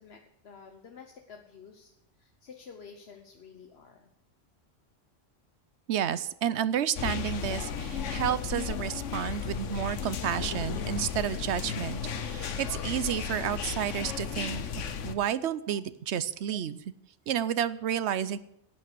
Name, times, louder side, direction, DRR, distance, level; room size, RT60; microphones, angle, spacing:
voice 1, 0.0-1.9 2.2-4.1, left 6 dB, 60° left, 3 dB, 1.2 m, -50 dB
voice 2, 5.9-14.6 15.0-16.8 17.3-18.4, right 10 dB, 70° right, 16 dB, 0.9 m, -31 dB
sound 1, 7.0-15.1, left 7 dB, 90° left, 1.2 m, -34 dB
11.5 x 9.3 x 6.7 m, 0.78 s
omnidirectional pair, 1.2 m